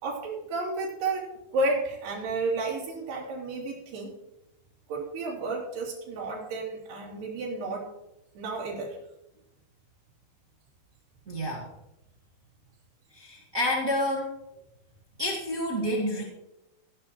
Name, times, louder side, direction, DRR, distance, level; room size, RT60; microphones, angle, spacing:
voice 1, 0.0-4.1 4.9-7.8 8.4-9.0, right 2 dB, 85° right, -4 dB, 5.2 m, -32 dB
voice 2, 11.3-11.6 13.1-14.4 15.2-16.2, left 1 dB, 30° right, -2 dB, 1.5 m, -29 dB
17.0 x 11.0 x 3.1 m, 0.88 s
omnidirectional pair, 4.5 m